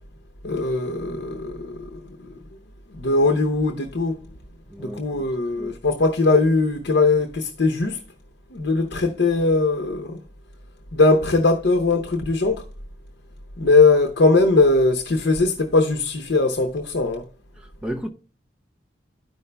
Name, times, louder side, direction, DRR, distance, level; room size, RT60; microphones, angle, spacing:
voice 1, 0.4-2.0 2.9-4.2 4.8-8.0 8.5-10.2 10.9-12.6 13.6-17.2, left 3 dB, 75° left, 0.7 m, -20 dB
voice 2, 4.7-5.3 5.5-5.8 17.6-18.1, equal, 5° right, 0.7 m, -34 dB
13.0 x 5.4 x 2.2 m
head